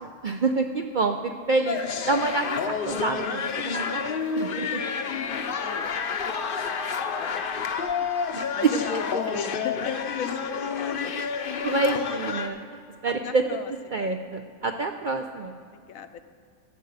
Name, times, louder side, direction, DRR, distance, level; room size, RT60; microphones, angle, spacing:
voice 1, 0.0-1.8 2.0-4.8 8.3-8.4 11.6-12.6 13.0-13.4 13.9-15.5, right 3 dB, 60° right, 5 dB, 0.5 m, -27 dB
sound 1, 1.7-12.5, left 6 dB, 50° left, 0.8 m, -29 dB
voice 2, 4.4-6.4 6.7-6.8 7.2-8.1 8.5-11.1 13.0-14.1 15.7-16.2, left 6 dB, 80° left, 9 dB, 1.1 m, -38 dB
sound 2, 6.3-15.0, left 6 dB, 25° right, 0.8 m, -47 dB
12.5 x 6.3 x 8.0 m, 2.3 s
omnidirectional pair, 1.5 m